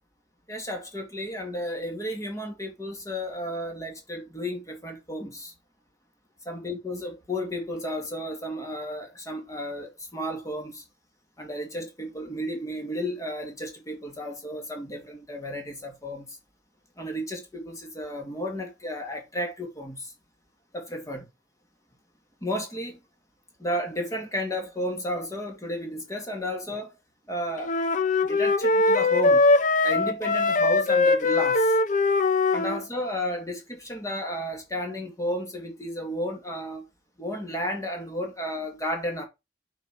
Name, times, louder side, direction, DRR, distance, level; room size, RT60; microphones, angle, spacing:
voice 1, 0.5-5.5 6.5-10.8 11.4-16.4 17.0-20.1 20.7-21.3 22.4-23.0 23.6-26.9 27.3-27.7 28.2-29.4 29.8-31.7 32.5-36.8 37.2-39.2, equal, 20° left, 2.3 m, -33 dB
sound 1, 27.6-32.8, left 3 dB, 50° left, 0.9 m, -21 dB
8.8 x 4.6 x 4.8 m
head